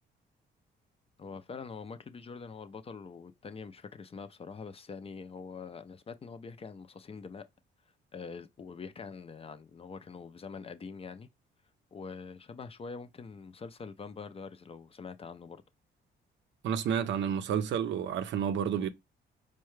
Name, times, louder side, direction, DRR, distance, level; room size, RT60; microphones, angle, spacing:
voice 1, 1.2-7.4 8.1-11.3 11.9-15.6, left 5 dB, 30° left, 0.4 m, -44 dB
voice 2, 16.6-18.9, right 8 dB, 65° right, 0.5 m, -30 dB
4.6 x 2.2 x 3.1 m
cardioid pair, 90°, 20 cm